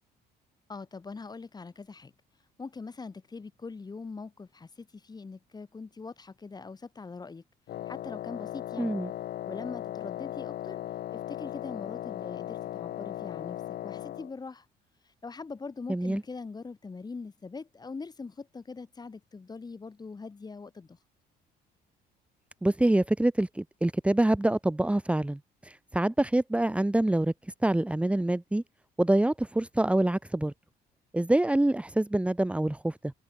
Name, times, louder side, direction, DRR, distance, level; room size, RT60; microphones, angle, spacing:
voice 1, 0.7-2.1 2.6-7.4 7.9-8.9 9.4-10.8 11.1-14.7 15.2-21.0, left 4 dB, 25° left, 4.6 m, -42 dB
Wind instrument woodwind instrument, 7.7-14.3, left 13 dB, 65° left, 5.2 m, -37 dB
voice 2, 8.8-9.1 15.9-16.2 22.6-27.3 27.6-28.6 29.0-30.5 31.1-33.1, right 1 dB, 5° right, 2.3 m, -26 dB
cardioid pair, 110°, 17 cm